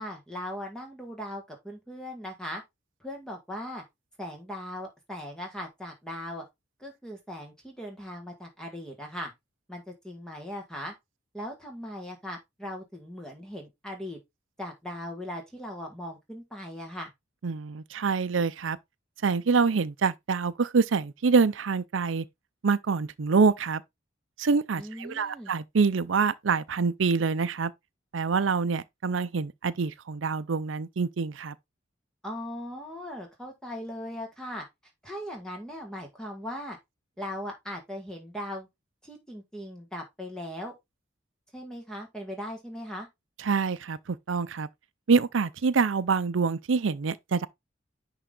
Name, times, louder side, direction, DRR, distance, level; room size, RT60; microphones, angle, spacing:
voice 1, 0.0-2.6 3.0-3.8 4.2-6.4 6.8-9.3 9.7-10.9 11.3-14.2 14.6-17.1 24.8-25.5 32.2-34.6 35.0-36.8 37.2-38.7 39.0-40.7 41.5-43.1, left 1 dB, 5° left, 1.6 m, -39 dB
voice 2, 17.4-18.8 19.2-22.2 22.6-23.8 24.4-27.7 28.1-31.5 43.4-44.7 45.1-47.5, right 5 dB, 85° right, 0.6 m, -26 dB
10.5 x 3.7 x 3.8 m
head